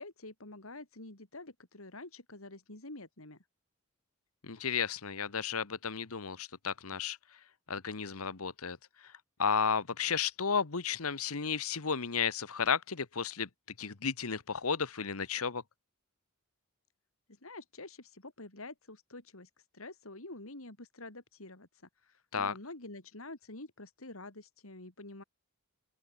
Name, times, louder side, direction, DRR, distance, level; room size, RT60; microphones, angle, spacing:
voice 1, 0.0-3.4 17.3-21.7 22.0-25.2, left 2 dB, 70° left, 3.8 m, -48 dB
voice 2, 4.4-7.2 7.7-8.8 9.4-13.5 13.8-15.6 22.3-22.5, left 6 dB, 90° left, 1.3 m, -33 dB
open air
head